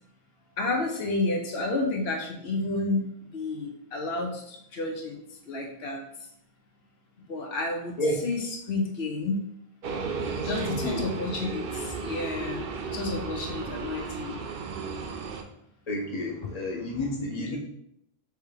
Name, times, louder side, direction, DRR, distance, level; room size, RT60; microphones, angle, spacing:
voice 1, 0.6-5.2 5.5-6.0 7.3-9.4 10.4-14.4 16.4-16.5 17.4-17.6, left 2 dB, 85° left, 2 dB, 1.0 m, -31 dB
sound 1, 9.8-15.4, right 5 dB, 65° right, 0.8 m, -34 dB
voice 2, 10.6-11.1 15.9-17.6, left 1 dB, 40° left, -2 dB, 1.1 m, -30 dB
3.4 x 3.3 x 4.7 m, 0.75 s
omnidirectional pair, 1.0 m